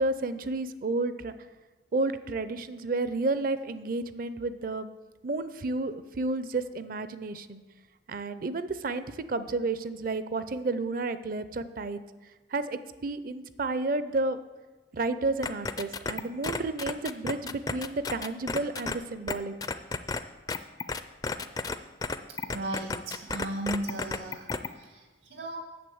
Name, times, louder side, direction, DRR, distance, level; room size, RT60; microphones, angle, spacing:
voice 1, 0.0-1.3 1.9-4.9 5.2-7.6 8.1-12.0 12.5-14.4 14.9-19.5, right 3 dB, 50° right, 13 dB, 0.5 m, -31 dB
sound 1, 15.4-18.9 19.3-19.4 19.6-20.2 20.5-21.8 22.0-24.7, left 4 dB, 20° left, 0.4 m, -32 dB
voice 2, 22.3-25.6, right 1 dB, 90° right, 1 dB, 2.4 m, -36 dB
8.7 x 7.0 x 7.8 m, 1.2 s
head